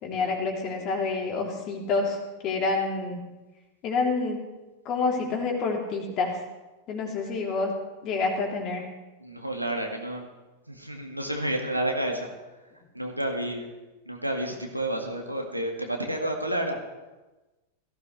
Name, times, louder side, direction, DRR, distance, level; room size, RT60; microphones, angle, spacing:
voice 1, 0.0-2.2 2.4-3.2 3.8-4.4 4.8-6.4 6.9-7.7 8.0-8.8, left 4 dB, 35° left, 0 dB, 3.1 m, -28 dB
voice 2, 9.2-10.3 10.7-12.3 12.9-13.7 14.1-16.8, right 1 dB, 90° right, 2 dB, 1.8 m, -30 dB
17.0 x 15.0 x 3.3 m, 1.1 s
figure-of-eight pair, 90°, 0 cm